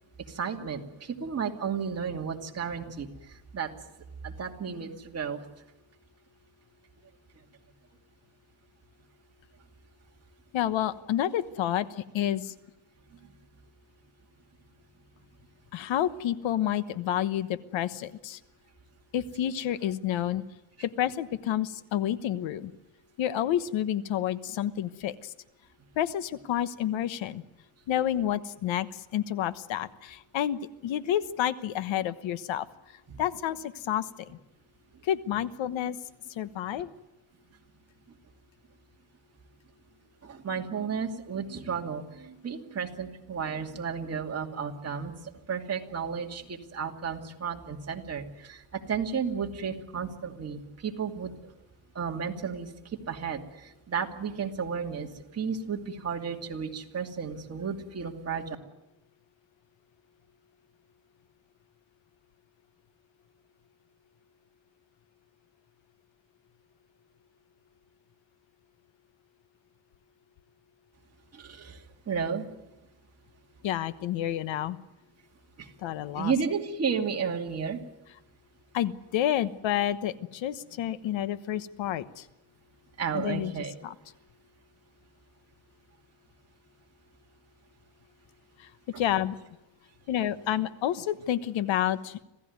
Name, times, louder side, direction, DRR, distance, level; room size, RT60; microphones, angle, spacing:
voice 1, 0.3-3.7 4.2-5.4 13.2-13.3 40.2-45.1 45.5-51.5 51.9-58.6 71.3-72.4 75.6-75.7 76.1-77.8 83.0-83.7 88.9-89.0, right 6 dB, 35° right, 2 dB, 2.5 m, -33 dB
voice 2, 10.5-12.5 15.7-18.4 19.1-20.4 20.8-22.7 23.2-25.3 26.0-27.4 27.9-32.7 33.2-34.4 35.0-36.0 36.3-36.9 73.6-74.8 75.8-76.3 78.7-82.3 83.1-83.5 83.8-83.9 88.6-88.7 89.0-89.4 90.1-92.2, left 11 dB, 85° left, 14 dB, 1.2 m, -29 dB
26.5 x 16.5 x 9.5 m, 0.95 s
cardioid pair, 155°, 45 cm